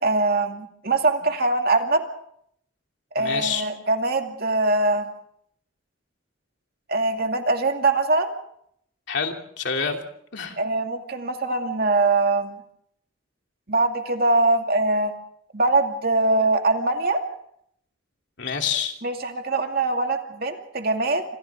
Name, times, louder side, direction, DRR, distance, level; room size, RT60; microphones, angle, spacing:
voice 1, 0.0-2.0 3.1-5.1 6.9-8.3 10.6-12.6 13.7-15.1 15.5-17.2 19.0-21.2, right 2 dB, 50° right, 4 dB, 2.4 m, -22 dB
voice 2, 3.2-3.7 9.1-10.0 10.3-10.6 18.4-18.9, left 6 dB, 60° left, 3 dB, 3.0 m, -27 dB
29.0 x 26.0 x 3.7 m, 0.69 s
head